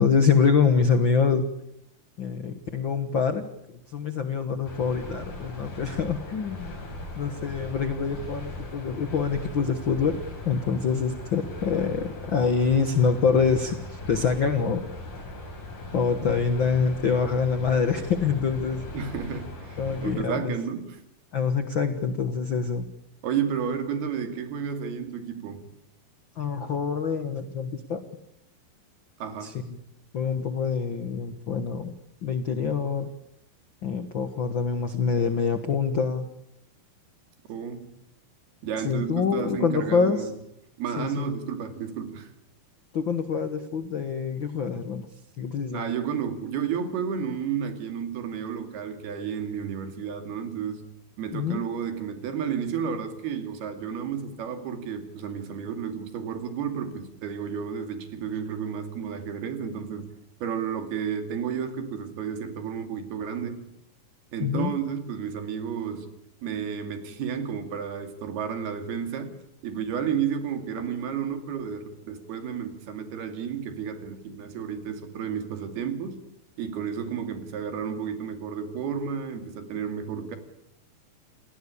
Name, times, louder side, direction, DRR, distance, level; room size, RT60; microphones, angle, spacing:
voice 1, 0.0-1.5 2.2-3.5 3.9-6.8 7.2-14.9 15.9-18.8 19.8-20.5 21.3-22.9 26.4-28.0 29.4-29.8 30.1-31.9 32.2-33.1 33.8-36.3 38.8-40.3 41.0-41.3 42.9-45.1 45.4-45.9 51.3-51.6 64.4-64.7, left 5 dB, 80° left, 9 dB, 1.0 m, -25 dB
sound 1, 4.6-20.2, left 2 dB, 55° left, 7.7 m, -39 dB
voice 2, 18.9-21.0 23.2-25.7 29.2-29.5 37.5-37.9 38.6-40.3 40.8-42.3 45.7-50.9 51.2-60.1 60.4-63.7 64.3-66.1 66.4-76.2 76.6-80.4, right 7 dB, 80° right, 7 dB, 4.4 m, -32 dB
29.0 x 18.5 x 8.5 m, 0.79 s
omnidirectional pair, 4.5 m